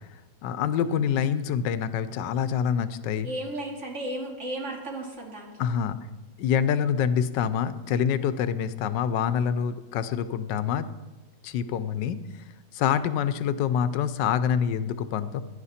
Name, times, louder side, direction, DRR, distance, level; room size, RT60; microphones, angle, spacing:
voice 1, 0.4-3.3 5.6-6.0 6.4-10.9 11.4-12.2 12.7-15.4, left 8 dB, 85° left, 13 dB, 1.3 m, -26 dB
voice 2, 3.2-5.7 8.4-8.6, right 1 dB, 40° right, 0 dB, 2.4 m, -35 dB
16.0 x 10.5 x 4.2 m, 1.2 s
omnidirectional pair, 1.9 m